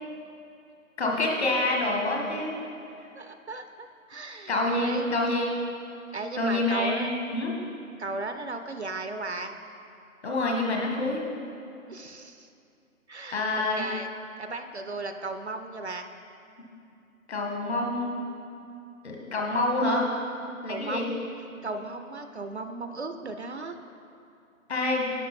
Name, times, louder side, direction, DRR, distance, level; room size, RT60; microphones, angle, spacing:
voice 1, 1.0-2.5 4.5-5.5 6.4-7.5 10.2-11.2 13.3-13.9 17.3-18.2 19.0-20.1 20.6-21.1 24.7-25.1, left 2 dB, 50° left, -1 dB, 1.5 m, -27 dB
voice 2, 3.1-5.1 6.1-7.1 8.0-9.5 11.9-12.5 13.1-13.5 13.8-14.1 14.4-16.1 20.7-21.3 21.6-23.8, right 3 dB, 50° right, 7 dB, 0.5 m, -36 dB
10.5 x 6.4 x 4.1 m, 2.6 s
figure-of-eight pair, 160°, 42 cm